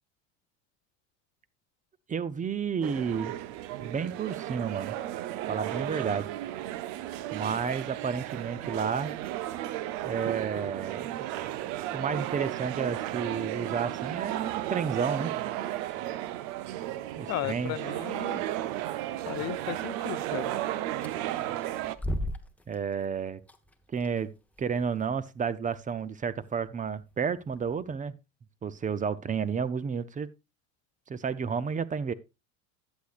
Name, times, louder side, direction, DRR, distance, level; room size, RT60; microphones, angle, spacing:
voice 1, 2.1-3.3 3.8-5.0 5.5-6.3 7.3-9.1 10.0-11.2 11.9-15.3 17.2-17.8 22.7-23.4 23.9-24.3 24.6-28.2 28.6-30.3 31.1-32.1, right 6 dB, 20° right, 0.6 m, -31 dB
sound 1, 2.8-22.0, right 14 dB, 70° right, 0.7 m, -34 dB
voice 2, 17.3-18.4 19.3-20.6, left 17 dB, 45° left, 0.5 m, -35 dB
sound 2, 20.9-28.0, equal, 5° left, 0.9 m, -41 dB
11.5 x 8.1 x 2.4 m
supercardioid pair, 95°, 38 cm